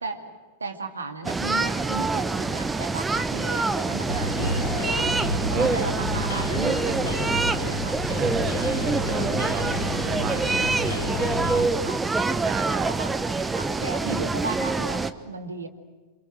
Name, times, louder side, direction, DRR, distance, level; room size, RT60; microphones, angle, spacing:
voice 1, 0.0-4.7 5.5-7.2 7.6-8.0 11.4-13.1 13.5-15.7, right 3 dB, 75° right, 5 dB, 2.5 m, -36 dB
sound 1, 1.2-15.1, right 3 dB, 10° right, 1.1 m, -26 dB
sound 2, 4.1-11.7, left 2 dB, 70° left, 4.1 m, -31 dB
voice 2, 5.2-5.7 8.2-10.5 12.2-12.9, right 10 dB, 30° right, 13 dB, 0.7 m, -35 dB
28.5 x 27.0 x 6.5 m, 1.3 s
figure-of-eight pair, 90°, 0 cm